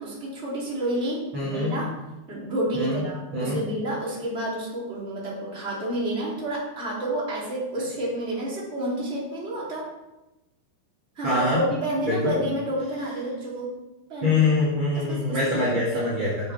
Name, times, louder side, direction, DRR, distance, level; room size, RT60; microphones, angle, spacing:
voice 1, 0.0-1.9 2.3-9.8 11.2-13.7 14.1-14.5 14.9-15.8 16.4-16.5, right 1 dB, 15° right, -5 dB, 3.1 m, -30 dB
voice 2, 1.3-1.8 2.7-3.0 3.3-3.6 11.2-11.6 12.0-12.3 14.2-16.5, left 2 dB, 35° right, -7 dB, 2.7 m, -24 dB
11.0 x 8.0 x 4.4 m, 0.99 s
omnidirectional pair, 4.8 m